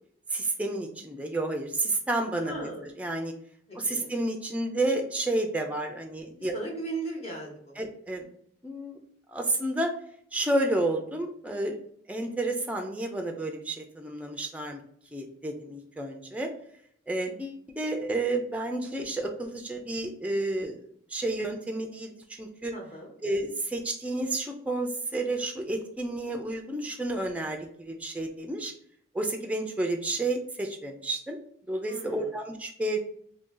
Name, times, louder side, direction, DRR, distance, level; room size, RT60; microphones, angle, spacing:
voice 1, 0.3-2.7 3.0-3.3 3.8-6.5 7.8-8.3 8.6-9.0 9.3-9.9 10.3-11.8 12.1-14.8 15.1-16.5 17.1-20.8 21.1-22.7 23.2-28.7 29.1-31.4 31.7-33.0, right 2 dB, 10° right, 3 dB, 0.4 m, -30 dB
voice 2, 2.4-2.9 3.7-4.1 6.4-7.7 22.7-23.1 31.9-32.3, right 2 dB, 35° left, -3 dB, 1.2 m, -37 dB
2.7 x 2.7 x 3.7 m, 0.64 s
head